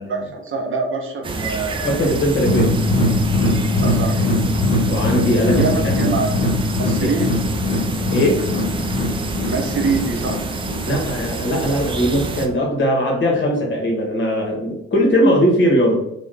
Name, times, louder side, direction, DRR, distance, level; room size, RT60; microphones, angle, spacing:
voice 1, 0.1-2.1 3.8-4.6 5.4-6.5 6.8-7.3 9.5-10.4, right 3 dB, 35° right, 1 dB, 0.8 m, -24 dB
sound 1, 1.2-12.5, right 3 dB, 15° right, 0.3 m, -27 dB
voice 2, 1.8-2.7 4.9-5.5 5.8-5.9 7.0-7.1 8.1-8.4 10.8-16.0, equal, 30° left, -1 dB, 1.2 m, -19 dB
sound 2, 2.4-11.6 12.0-12.1 12.5-12.6, left 2 dB, 85° left, 0.5 m, -21 dB
3.2 x 2.3 x 3.3 m, 0.79 s
figure-of-eight pair, 45°, 36 cm